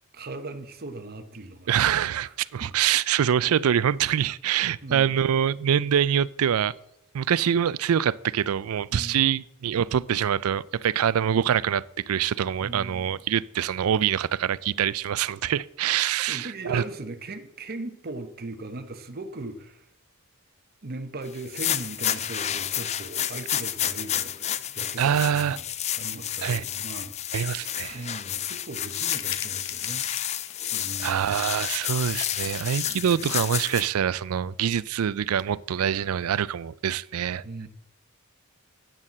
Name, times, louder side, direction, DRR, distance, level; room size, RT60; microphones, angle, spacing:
voice 1, 0.1-1.8 2.2-2.3 2.6-2.7 3.4-3.5 4.8-5.3 8.9-9.4 12.6-13.2 16.3-19.9 20.8-25.6 26.0-27.1 27.9-30.1 30.7-31.6 32.8-33.3 37.4-37.7, right 2 dB, 45° right, 0.9 m, -39 dB
voice 2, 1.7-6.7 7.1-16.8 25.0-25.6 26.4-26.6 27.3-28.0 31.0-37.4, right 9 dB, 85° right, 0.4 m, -25 dB
sound 1, 21.3-33.9, left 10 dB, 30° left, 0.4 m, -30 dB
sound 2, 28.3-28.4 28.8-31.1 31.5-32.9, left 10 dB, 60° left, 0.8 m, -41 dB
9.0 x 6.6 x 7.3 m
head